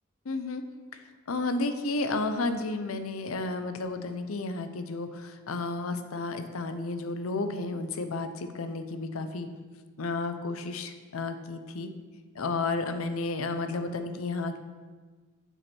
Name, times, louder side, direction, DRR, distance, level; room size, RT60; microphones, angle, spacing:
voice 1, 0.2-0.6 1.3-9.5 10.0-11.9 12.4-14.6, left 3 dB, 75° left, 9 dB, 0.6 m, -32 dB
8.0 x 4.4 x 6.1 m, 1.4 s
head